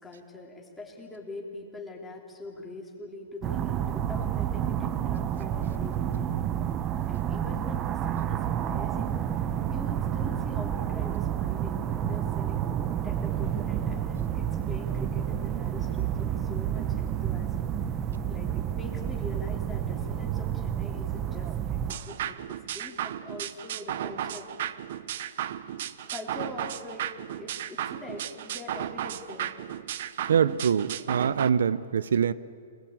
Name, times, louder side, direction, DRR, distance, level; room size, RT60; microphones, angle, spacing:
voice 1, 0.0-6.4 7.1-9.3 9.7-17.7 18.3-24.5 26.1-29.5, left 2 dB, 10° left, -2 dB, 3.4 m, -43 dB
sound 1, 3.4-21.9, right 10 dB, 25° right, 1.0 m, -30 dB
sound 2, 21.9-31.5, right 11 dB, 60° right, 0.9 m, -35 dB
voice 2, 30.3-32.3, right 7 dB, 85° right, 17 dB, 0.9 m, -24 dB
25.5 x 19.5 x 8.8 m, 2.3 s
hypercardioid pair, 150°, 0 cm